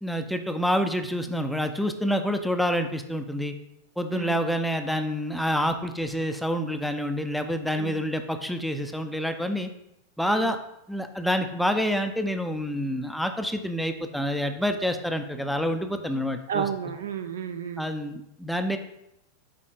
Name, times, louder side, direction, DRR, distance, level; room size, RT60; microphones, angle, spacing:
voice 1, 0.0-3.5 4.0-9.7 10.2-10.6 10.9-16.7 17.8-18.8, equal, ahead, 7 dB, 0.6 m, -27 dB
voice 2, 16.5-17.9, right 8 dB, 65° right, 8 dB, 0.6 m, -32 dB
8.7 x 4.1 x 3.7 m, 0.82 s
figure-of-eight pair, 90°, 0 cm